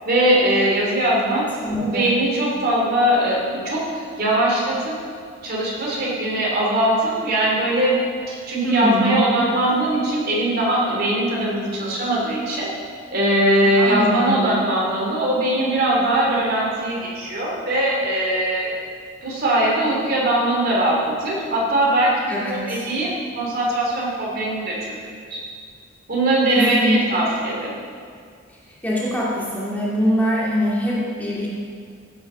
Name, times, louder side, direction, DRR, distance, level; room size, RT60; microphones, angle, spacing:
voice 1, 0.0-1.5 1.8-4.9 5.4-12.7 13.1-18.7 19.2-24.7 25.3-25.4 26.1-27.8, right 1 dB, 50° right, -4 dB, 3.2 m, -21 dB
voice 2, 1.6-2.1 8.6-9.2 13.8-14.6 22.3-22.9 26.5-27.0 28.8-31.5, equal, 10° left, -8 dB, 2.5 m, -23 dB
16.0 x 6.3 x 6.3 m, 2.1 s
head